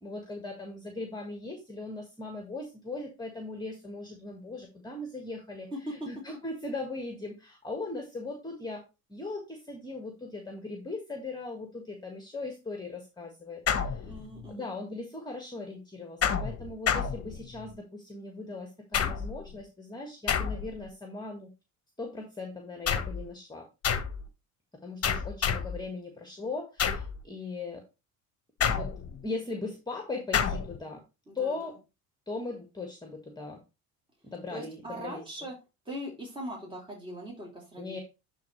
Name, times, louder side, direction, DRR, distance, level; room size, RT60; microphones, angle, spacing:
voice 1, 0.0-8.8 9.1-14.1 14.5-21.5 22.0-23.6 24.8-27.8 28.6-28.9 29.2-31.0 31.3-31.7 32.3-33.6 34.2-35.3 37.8-38.0, left 3 dB, 10° left, 4 dB, 1.6 m, -39 dB
voice 2, 5.7-6.1 14.0-14.7 31.3-31.7 34.5-35.6 35.8-38.0, equal, 10° right, -3 dB, 2.8 m, -40 dB
sound 1, 13.7-14.5 16.2-17.7 18.9-19.5 20.3-20.9 22.9-23.3 23.8-24.3 25.0-25.8 26.8-27.2 28.6-29.2 30.3-30.8, left 7 dB, 35° left, 1.1 m, -29 dB
10.5 x 3.9 x 3.2 m, 0.27 s
hypercardioid pair, 70°, 44 cm